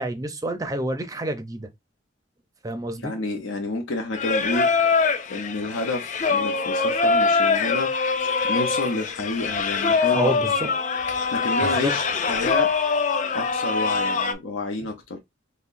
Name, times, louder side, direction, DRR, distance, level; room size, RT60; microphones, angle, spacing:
voice 1, 0.0-1.7 2.6-3.1 10.1-10.5 11.6-11.9, right 1 dB, 20° right, 0.5 m, -28 dB
voice 2, 3.0-4.7 5.3-7.9 8.4-10.4 11.3-12.7 13.3-15.2, left 2 dB, 80° left, 0.7 m, -29 dB
Singing, 4.1-14.3, left 4 dB, 40° left, 0.4 m, -23 dB
5.5 x 2.1 x 2.5 m
head